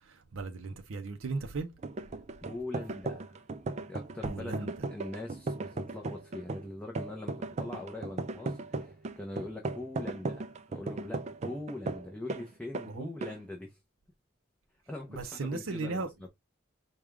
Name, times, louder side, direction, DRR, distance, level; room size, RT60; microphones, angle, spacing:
voice 1, 0.0-1.7 4.2-4.7 12.9-13.1 15.1-16.1, right 3 dB, 80° right, 0.6 m, -36 dB
sound 1, 1.8-12.5 12.7-12.9 13.2-13.4, right 3 dB, 35° right, 0.3 m, -37 dB
voice 2, 2.4-13.8 14.9-16.3, left 2 dB, 5° left, 0.6 m, -42 dB
4.9 x 2.3 x 3.4 m
head